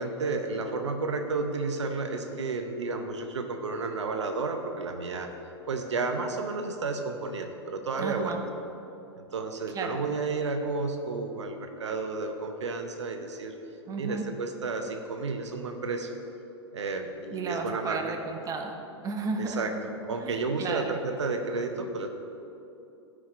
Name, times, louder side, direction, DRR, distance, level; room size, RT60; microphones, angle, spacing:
voice 1, 0.0-5.3 5.7-8.3 9.2-13.5 14.0-16.1 16.7-18.2 19.4-19.7 20.1-22.1, right 3 dB, 80° right, 6 dB, 0.8 m, -32 dB
voice 2, 8.0-8.4 9.7-10.0 13.9-14.3 17.3-19.6 20.2-21.0, right 4 dB, 25° right, 4 dB, 0.9 m, -34 dB
12.5 x 5.0 x 4.6 m, 2.9 s
hypercardioid pair, 105°, 15 cm